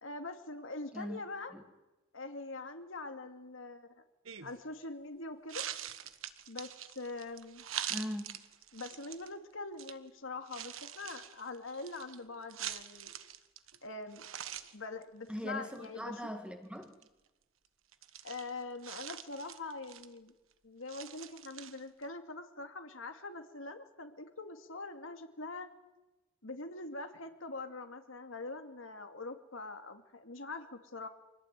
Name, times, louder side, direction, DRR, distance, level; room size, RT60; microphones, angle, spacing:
voice 1, 0.0-1.5 2.1-3.9 4.4-5.7 6.5-7.6 8.7-13.1 13.8-14.2 14.7-16.2 18.2-20.3 20.6-25.7 26.4-31.1, left 3 dB, 75° left, 6 dB, 2.5 m, -43 dB
sound 1, 4.3-4.6 5.5-9.3 9.8-9.9 10.4-13.8 14.1-14.8 15.0-15.1 15.5-15.9 16.8-17.1 17.9-20.3 20.9-22.0, right 10 dB, 80° right, 1.4 m, -44 dB
voice 2, 7.9-8.4 15.3-16.9, equal, 5° right, 6 dB, 2.0 m, -40 dB
25.5 x 18.0 x 9.3 m, 1.1 s
head